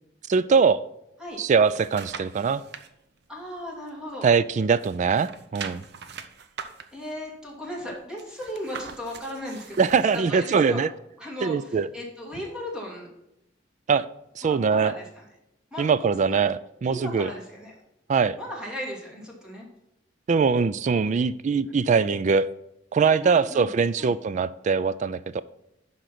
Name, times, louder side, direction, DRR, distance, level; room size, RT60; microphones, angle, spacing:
voice 1, 0.3-0.8 1.4-2.6 4.2-5.8 9.8-10.9 11.4-11.9 13.9-14.1 14.4-14.9 15.8-17.3 18.1-18.4 20.3-22.5 22.9-25.4, right 5 dB, 40° right, 16 dB, 0.3 m, -22 dB
sound 1, 1.3-2.9 3.4-4.5 4.7-10.3 10.7-10.8, right 6 dB, 60° right, 0.7 m, -42 dB
voice 2, 3.3-4.3 6.9-10.9 11.2-13.1 14.4-15.2 15.7-16.4 16.9-17.7 18.4-19.7 23.2-23.7 24.0-24.1, left 1 dB, 5° right, -3 dB, 2.5 m, -36 dB
11.0 x 3.9 x 5.9 m, 0.84 s
head